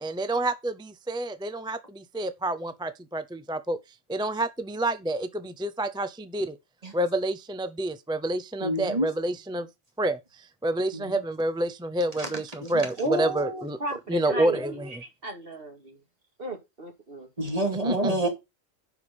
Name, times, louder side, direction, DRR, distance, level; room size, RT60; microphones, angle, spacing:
voice 1, 0.0-3.8 4.1-6.6 6.9-9.7 10.0-13.8 14.1-14.9 17.8-18.2, right 1 dB, 5° right, 0.4 m, -28 dB
voice 2, 8.6-9.1 11.1-11.2 12.6-12.7 17.4-18.3, right 1 dB, 30° right, 2.8 m, -26 dB
voice 3, 13.0-14.8 15.2-16.0 16.4-17.3, right 1 dB, 45° right, 2.6 m, -33 dB
10.5 x 4.9 x 5.3 m
omnidirectional pair, 1.4 m